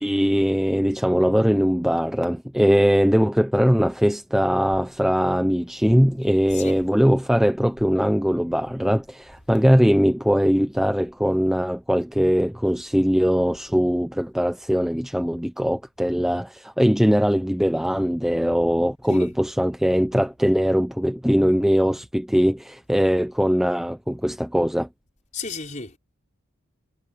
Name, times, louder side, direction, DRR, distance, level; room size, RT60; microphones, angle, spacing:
voice 1, 0.0-24.9, equal, ahead, 0.5 m, -21 dB
voice 2, 25.3-26.0, left 4 dB, 35° left, 5.1 m, -33 dB
head